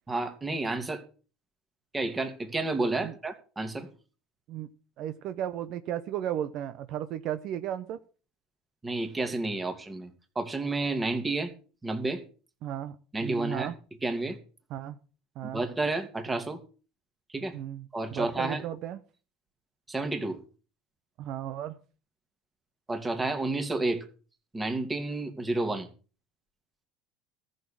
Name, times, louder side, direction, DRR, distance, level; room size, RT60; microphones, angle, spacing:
voice 1, 0.1-1.0 1.9-3.9 8.8-10.1 10.4-11.5 11.8-12.2 13.1-13.7 14.0-14.4 15.5-16.6 17.3-17.6 17.9-18.6 19.9-20.4 22.9-24.0 24.5-25.9, right 2 dB, 15° right, 7 dB, 2.5 m, -30 dB
voice 2, 5.0-8.0 12.6-13.7 14.7-15.0 15.4-15.6 17.5-19.0 21.2-21.8, right 11 dB, 60° right, 11 dB, 0.9 m, -35 dB
14.0 x 6.7 x 7.4 m, 0.37 s
supercardioid pair, 105°, 0 cm